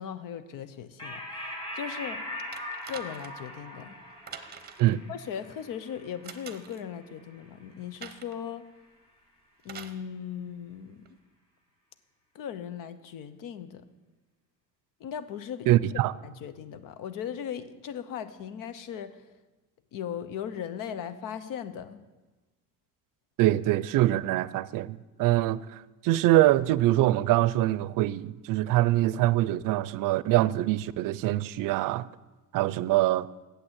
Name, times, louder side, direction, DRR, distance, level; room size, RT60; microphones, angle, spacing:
voice 1, 0.0-2.2 2.9-4.0 5.1-8.7 9.6-11.1 12.3-13.9 15.0-19.3 19.9-22.0, left 8 dB, 90° left, 0.8 m, -38 dB
sound 1, 1.0-7.9, left 1 dB, 15° left, 1.8 m, -41 dB
sound 2, 2.5-3.5 4.3-5.0 6.2-6.8 8.0-8.4 9.6-10.0 11.1-11.2, right 7 dB, 30° right, 0.7 m, -45 dB
voice 2, 15.7-16.1 23.4-32.1 32.5-33.3, right 15 dB, 85° right, 0.5 m, -24 dB
8.8 x 8.0 x 8.1 m
cardioid pair, 175°, 32 cm